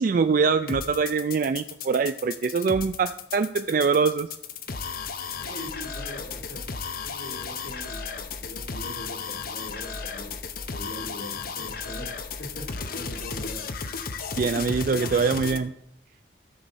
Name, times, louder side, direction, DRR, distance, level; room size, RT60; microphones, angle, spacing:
voice 1, 0.0-4.3 14.4-15.7, right 5 dB, 45° right, 9 dB, 0.3 m, -23 dB
sound 1, 0.7-15.6, left 5 dB, 50° left, 0.7 m, -34 dB
voice 2, 5.4-6.7 7.0-10.3 10.7-12.1 12.4-13.6, equal, 75° left, -2 dB, 3.0 m, -41 dB
14.0 x 7.0 x 4.0 m, 0.78 s
head